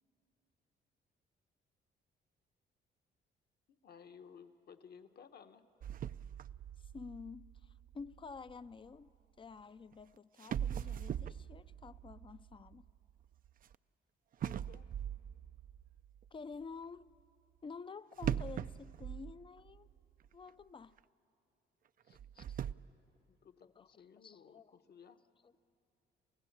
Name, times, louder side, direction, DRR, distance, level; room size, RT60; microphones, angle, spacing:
voice 1, 3.7-5.6 14.4-14.9 22.0-22.2 23.3-25.2, left 7 dB, 55° left, 9 dB, 1.0 m, -58 dB
sound 1, 5.8-9.0 9.9-10.0 10.4-13.7 14.4-16.3 18.2-20.0 20.2-20.3 21.0-21.1 22.1-22.7, right 9 dB, 45° right, 0.4 m, -41 dB
voice 2, 6.8-9.1 9.4-12.9 16.3-17.1 17.6-19.9 20.3-21.0 22.3-22.6 23.6-23.9 24.2-24.8, left 5 dB, 25° left, 16 dB, 0.4 m, -50 dB
29.0 x 15.5 x 7.2 m, 2.6 s
cardioid pair, 90°, 20 cm